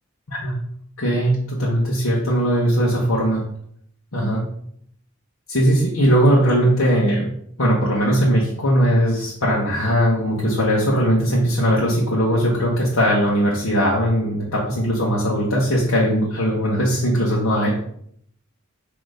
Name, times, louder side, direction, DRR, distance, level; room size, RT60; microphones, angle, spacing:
voice 1, 1.0-3.4 4.1-4.4 5.5-7.3 7.6-17.7, equal, 70° left, -5 dB, 1.2 m, -19 dB
6.3 x 3.0 x 5.0 m, 0.67 s
head